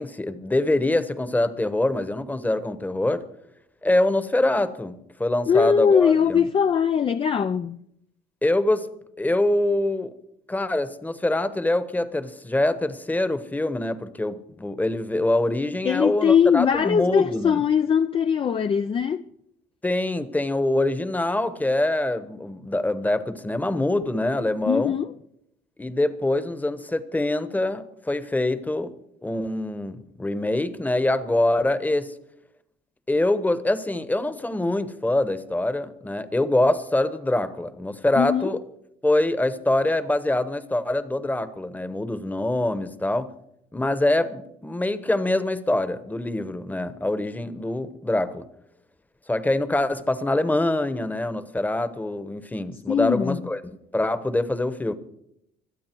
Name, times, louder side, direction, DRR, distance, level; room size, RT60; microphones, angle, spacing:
voice 1, 0.0-3.2 3.8-6.4 8.4-8.9 9.2-10.1 10.5-17.6 19.8-25.0 25.8-28.9 29.2-32.1 33.1-38.6 39.0-43.3 43.7-48.5 49.3-54.9, left 1 dB, 10° left, 1.1 m, -24 dB
voice 2, 5.5-7.8 15.8-19.2 24.7-25.1 38.2-38.5 52.9-53.4, left 7 dB, 30° left, 0.5 m, -21 dB
25.5 x 8.7 x 4.5 m
cardioid pair, 110°, 17 cm